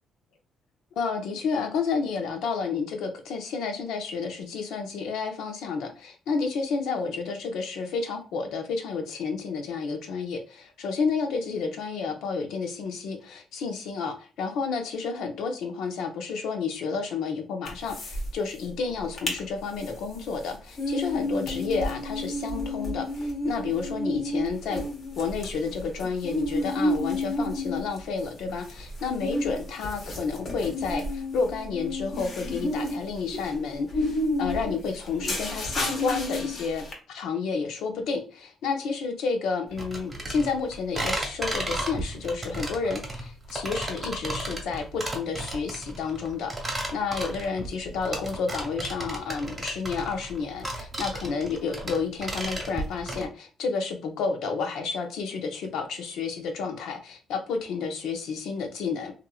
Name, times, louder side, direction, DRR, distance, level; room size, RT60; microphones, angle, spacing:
voice 1, 1.0-24.8 25.2-59.1, left 5 dB, 85° left, 5 dB, 0.6 m, -30 dB
sound 1, 17.7-18.3 18.6-18.7 19.0-19.4 19.8-36.9, left 1 dB, 50° left, 1.0 m, -31 dB
sound 2, 39.8-53.3, right 1 dB, 25° right, 1.1 m, -33 dB
2.9 x 2.5 x 2.3 m, 0.37 s
cardioid pair, 90°, 0 cm